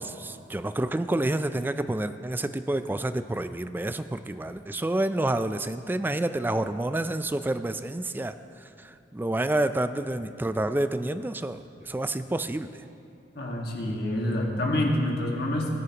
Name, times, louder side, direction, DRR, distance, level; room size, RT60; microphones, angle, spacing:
voice 1, 0.0-8.3 8.8-12.8, right 1 dB, 10° right, 10 dB, 0.3 m, -29 dB
voice 2, 13.3-15.7, left 1 dB, 65° left, -1 dB, 1.6 m, -27 dB
19.0 x 9.7 x 2.9 m, 2.7 s
head